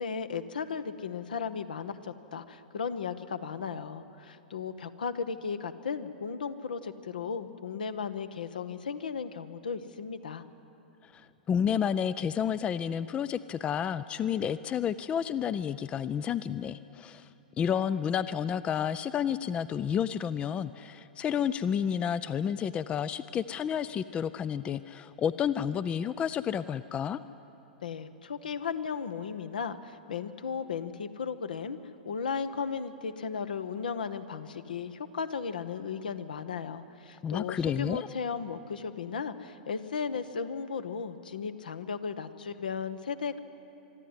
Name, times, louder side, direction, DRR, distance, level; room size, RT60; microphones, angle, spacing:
voice 1, 0.0-10.4 27.8-31.8 32.0-43.4, left 6 dB, 70° left, 12 dB, 1.0 m, -35 dB
voice 2, 11.1-17.3 17.6-27.2 37.2-38.1, left 8 dB, 20° left, 16 dB, 0.4 m, -30 dB
24.5 x 12.5 x 9.7 m, 2.9 s
figure-of-eight pair, 100°, 5 cm